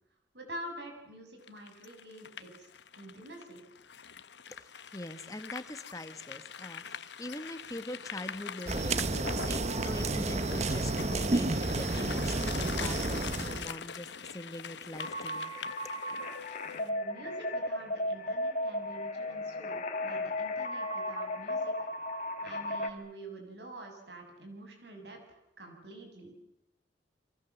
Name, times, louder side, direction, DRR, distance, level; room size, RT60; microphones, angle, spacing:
voice 1, 0.3-3.6 16.7-21.9 22.4-26.4, right 1 dB, 60° right, 7.2 m, -47 dB
sound 1, 1.4-16.9, left 7 dB, 65° left, 1.1 m, -44 dB
voice 2, 4.5-15.5, left 1 dB, 20° left, 1.6 m, -43 dB
sound 2, 8.7-13.7, right 2 dB, 35° right, 1.0 m, -31 dB
sound 3, 15.0-22.9, left 1 dB, 45° left, 2.4 m, -35 dB
30.0 x 23.5 x 7.4 m
head